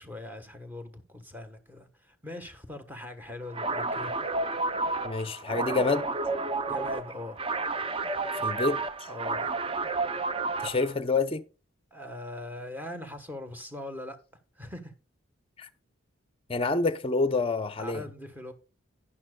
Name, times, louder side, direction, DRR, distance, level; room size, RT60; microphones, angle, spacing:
voice 1, 0.0-4.1 6.7-7.4 9.1-9.5 11.9-14.2 14.5-14.9 17.8-18.5, left 1 dB, 10° right, 1.1 m, -41 dB
sound 1, 3.5-10.9, right 3 dB, 25° right, 0.5 m, -31 dB
voice 2, 5.0-6.1 8.4-8.8 10.6-11.4 15.6-15.7 16.5-18.0, left 3 dB, 25° left, 0.6 m, -27 dB
11.5 x 9.9 x 2.2 m
head